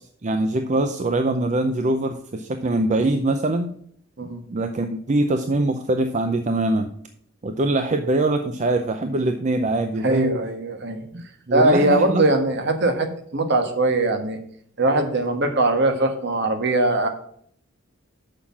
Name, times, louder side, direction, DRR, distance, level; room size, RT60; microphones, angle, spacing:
voice 1, 0.2-3.7 4.5-6.9 7.4-10.3 11.1-12.2, right 2 dB, 35° right, 6 dB, 0.5 m, -23 dB
voice 2, 10.0-11.0 11.5-14.4 14.8-17.1, right 2 dB, 60° right, 7 dB, 1.3 m, -21 dB
6.7 x 5.6 x 7.1 m, 0.64 s
head